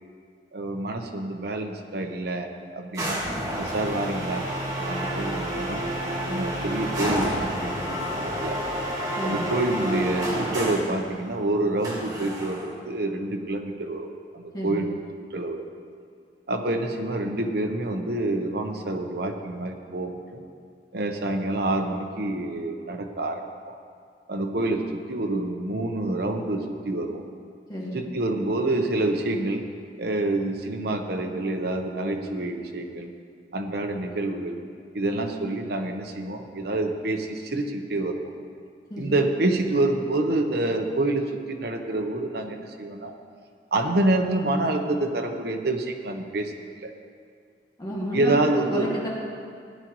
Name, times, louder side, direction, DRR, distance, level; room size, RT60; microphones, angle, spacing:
voice 1, 0.5-3.2 3.6-4.5 4.9-5.8 6.3-8.6 9.2-14.9 15.3-15.6 16.5-20.4 20.9-23.4 23.7-23.8 24.3-27.2 27.9-29.6 30.0-33.1 33.5-34.6 34.9-38.3 39.0-43.1 43.7-46.5 46.8-46.9 48.1-48.9, right 2 dB, 65° right, 4 dB, 1.0 m, -27 dB
sound 1, 3.0-11.0 11.8-12.8, right 1 dB, 20° right, 1.9 m, -29 dB
voice 2, 9.2-9.5 14.5-14.8 27.7-28.0 38.9-39.2 47.8-49.1, equal, 25° left, -5 dB, 2.0 m, -31 dB
16.5 x 10.5 x 3.1 m, 2.2 s
head